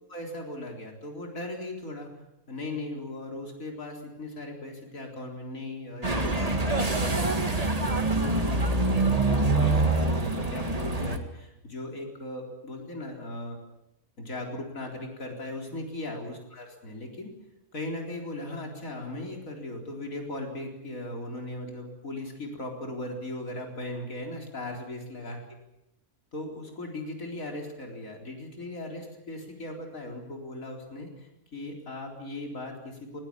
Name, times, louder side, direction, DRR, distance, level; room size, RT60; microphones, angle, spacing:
voice 1, 0.1-2.1 2.5-13.6 14.2-17.3 17.7-25.4 26.3-33.2, left 1 dB, 60° left, 1 dB, 4.4 m, -38 dB
sound 1, 6.0-11.2, right 2 dB, 25° right, 2.0 m, -25 dB
20.0 x 19.5 x 8.6 m, 0.86 s
omnidirectional pair, 1.6 m